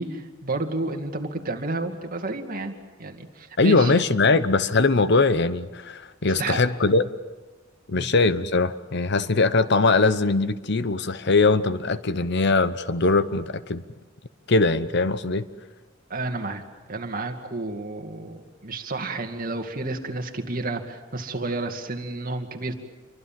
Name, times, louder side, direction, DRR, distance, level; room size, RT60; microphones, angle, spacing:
voice 1, 0.0-2.7 3.0-3.9 6.4-6.6 7.9-8.1 16.1-16.6 16.9-22.7, right 2 dB, 45° right, 4 dB, 2.3 m, -31 dB
voice 2, 3.6-7.1 7.9-13.8 14.5-15.5, left 3 dB, 60° left, 14 dB, 0.9 m, -21 dB
28.0 x 24.0 x 7.6 m, 1.2 s
head